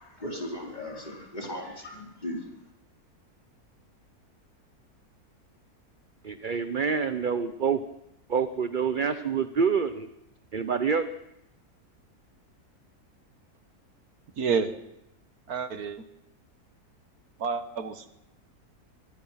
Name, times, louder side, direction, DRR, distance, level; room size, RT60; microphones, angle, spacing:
voice 1, 0.0-2.4, left 1 dB, 25° left, -1 dB, 4.5 m, -37 dB
voice 2, 6.2-7.8 8.3-10.1 10.5-11.1, right 6 dB, 40° right, 10 dB, 0.9 m, -27 dB
voice 3, 14.4-14.8 15.5-16.1 17.4-18.1, right 5 dB, 75° right, 10 dB, 1.8 m, -29 dB
25.0 x 22.5 x 5.8 m, 0.84 s
omnidirectional pair, 1.6 m